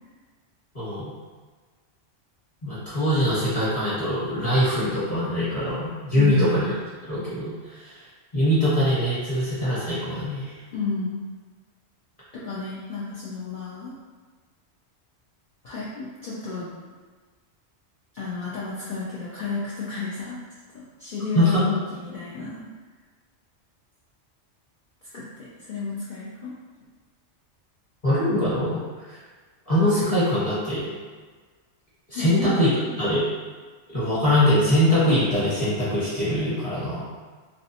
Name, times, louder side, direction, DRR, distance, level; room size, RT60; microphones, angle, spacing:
voice 1, 0.7-1.1 2.6-6.7 7.1-8.0 8.3-10.6 21.3-21.6 28.0-29.2 29.7-30.9 32.1-33.3 33.9-37.0, left 1 dB, 35° left, -11 dB, 1.1 m, -23 dB
voice 2, 6.1-6.7 10.7-11.2 12.3-13.9 15.6-16.7 18.1-20.4 20.7-22.6 25.1-26.5 32.1-33.2, left 4 dB, 60° left, -8 dB, 0.6 m, -32 dB
2.4 x 2.3 x 2.7 m, 1.4 s
omnidirectional pair, 1.2 m